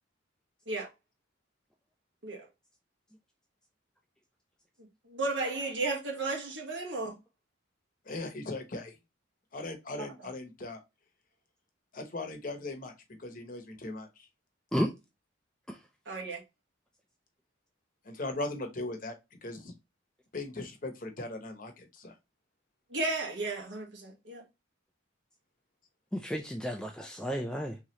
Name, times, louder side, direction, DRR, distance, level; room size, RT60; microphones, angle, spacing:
voice 1, 4.8-7.2 10.0-10.1 16.1-16.4 22.9-24.4, right 3 dB, 65° right, 1.3 m, -34 dB
voice 2, 8.1-8.9 9.5-10.8 11.9-12.9 13.2-14.1 18.0-19.1 19.4-19.7 20.3-22.1, left 2 dB, 45° left, 0.8 m, -38 dB
voice 3, 26.1-27.8, equal, 5° left, 0.3 m, -32 dB
3.6 x 3.1 x 2.9 m
head